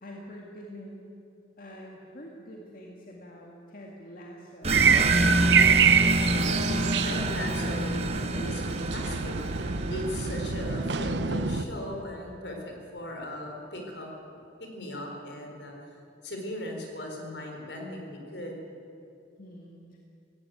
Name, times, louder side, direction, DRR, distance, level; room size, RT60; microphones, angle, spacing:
voice 1, 0.0-1.1 1.6-4.9 19.4-20.0, equal, 50° left, -1 dB, 2.0 m, -45 dB
sound 1, 4.6-10.9, right 1 dB, 35° right, 1.2 m, -28 dB
sound 2, 4.7-11.6, right 6 dB, 75° right, 0.8 m, -25 dB
voice 2, 6.3-9.3 9.9-14.1 14.6-15.7 16.2-18.6, left 1 dB, 70° left, 2 dB, 4.3 m, -38 dB
17.5 x 16.0 x 9.3 m, 2.7 s
head